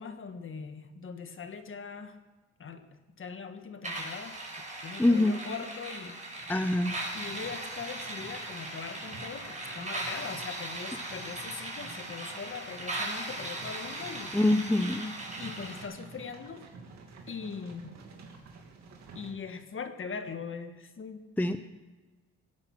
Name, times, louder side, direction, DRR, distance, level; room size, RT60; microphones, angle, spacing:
voice 1, 0.0-2.2 2.6-2.8 3.2-6.5 7.1-14.5 15.4-16.6 17.3-17.9 19.1-21.2, left 5 dB, 45° left, 8 dB, 1.6 m, -41 dB
sound 1, 3.8-15.8, right 2 dB, 25° right, 4.5 m, -39 dB
voice 2, 5.0-5.4 6.5-6.9 14.3-15.1 21.4-21.6, left 1 dB, 5° left, 9 dB, 0.6 m, -24 dB
sound 2, 6.3-19.3, right 4 dB, 65° right, 2.6 m, -50 dB
17.0 x 9.5 x 6.1 m, 1.3 s
cardioid pair, 90°, 30 cm